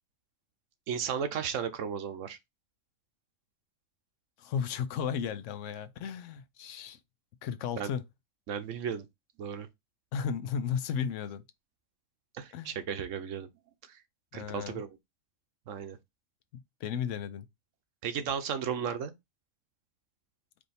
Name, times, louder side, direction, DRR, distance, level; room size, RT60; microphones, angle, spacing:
voice 1, 0.9-2.4 7.8-7.9 8.5-9.1 9.4-9.7 12.3-13.5 13.9-14.0 14.3-14.9 15.7-16.0 18.0-19.1, right 7 dB, 80° right, 1.1 m, -34 dB
voice 2, 4.4-7.0 7.4-8.0 10.1-11.4 12.5-12.8 14.3-14.8 16.5-17.5, left 7 dB, 80° left, 0.9 m, -34 dB
4.8 x 2.6 x 4.1 m
omnidirectional pair, 1.3 m